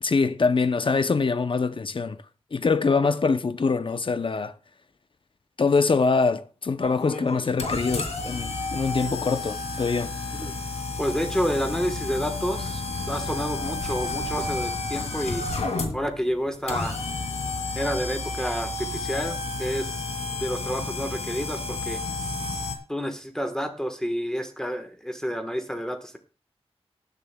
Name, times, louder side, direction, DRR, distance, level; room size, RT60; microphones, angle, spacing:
voice 1, 0.0-2.2 2.5-4.5 5.6-10.1, left 4 dB, 50° left, 0.6 m, -24 dB
sound 1, 6.8-22.7, left 3 dB, 90° left, 2.3 m, -31 dB
voice 2, 11.0-15.5 15.9-17.0 17.7-20.1 20.4-22.0 22.9-26.2, equal, 5° left, 1.2 m, -29 dB
19.5 x 10.5 x 2.2 m
wide cardioid pair, 100°, 11 cm